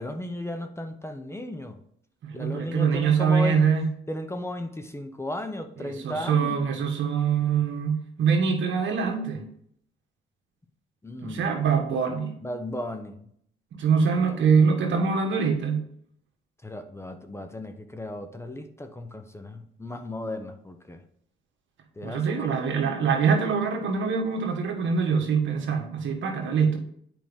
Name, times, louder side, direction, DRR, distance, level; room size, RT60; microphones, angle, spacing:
voice 1, 0.0-1.8 2.3-3.7 4.1-6.6 11.0-11.5 12.4-13.3 14.3-14.4 16.6-21.0 22.0-22.6, left 1 dB, 15° left, 7 dB, 0.8 m, -35 dB
voice 2, 2.2-3.9 5.8-9.4 11.2-12.3 13.8-15.9 22.0-26.8, right 6 dB, 70° right, 3 dB, 1.6 m, -24 dB
8.9 x 5.1 x 3.7 m, 0.67 s
cardioid pair, 90°, 20 cm